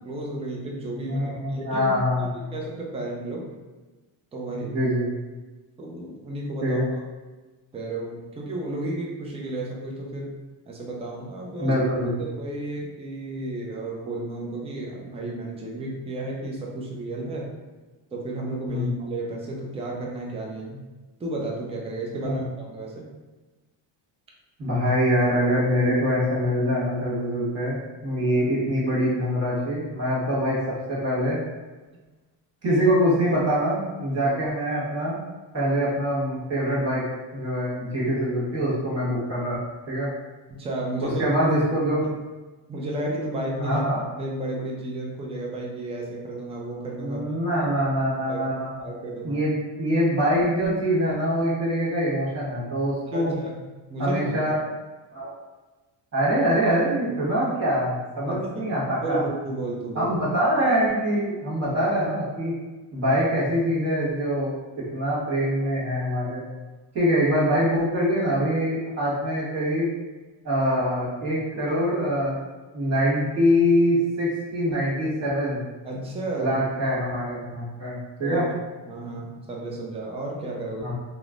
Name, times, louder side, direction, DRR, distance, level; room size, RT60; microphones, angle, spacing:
voice 1, 0.0-1.9 2.2-3.5 4.3-4.8 5.8-6.8 7.7-10.4 10.7-11.7 12.2-17.5 18.1-20.8 21.2-23.1 40.5-41.4 41.8-41.9 42.7-43.8 44.2-47.2 48.3-48.4 48.8-49.4 53.1-53.6 53.9-54.4 58.3-58.7 59.0-60.2 75.8-76.6 78.2-78.4 78.8-80.9, right 2 dB, 15° right, -2 dB, 0.3 m, -32 dB
voice 2, 1.1-2.3 4.7-5.0 6.6-6.9 11.6-12.1 18.7-18.9 22.2-22.4 24.6-30.6 30.9-31.4 32.6-35.2 35.5-37.0 37.3-39.6 39.9-40.1 41.0-42.0 43.6-44.0 47.0-48.7 49.2-53.4 54.0-54.6 55.1-55.3 56.1-59.2 59.9-62.5 62.9-66.4 66.9-69.9 70.4-72.4 72.7-75.6 76.4-78.4 80.8-80.9, equal, 30° right, -7 dB, 1.4 m, -24 dB
3.0 x 2.0 x 2.4 m, 1.2 s
cardioid pair, 105°, 48 cm